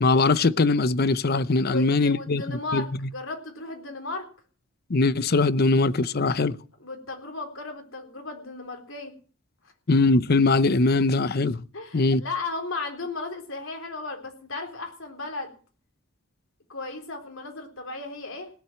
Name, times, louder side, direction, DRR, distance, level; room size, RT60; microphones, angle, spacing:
voice 1, 0.0-3.1 4.9-6.6 9.9-11.6 11.9-12.2, left 3 dB, 50° left, 0.7 m, -21 dB
voice 2, 1.6-4.3 6.8-9.1 11.7-15.5 16.7-18.5, left 3 dB, 80° left, 3.8 m, -35 dB
17.0 x 7.7 x 8.8 m
head